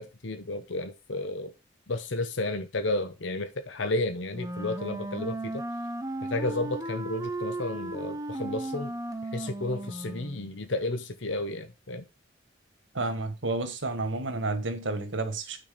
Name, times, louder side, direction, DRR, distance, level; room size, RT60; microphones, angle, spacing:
voice 1, 0.0-1.5 1.9-5.6 6.3-8.9 9.3-12.0, left 2 dB, 70° left, 1.0 m, -32 dB
Wind instrument woodwind instrument, 4.3-10.5, right 1 dB, 20° right, 0.8 m, -35 dB
voice 2, 12.9-15.6, right 2 dB, 80° right, 1.7 m, -30 dB
9.2 x 4.4 x 5.1 m
head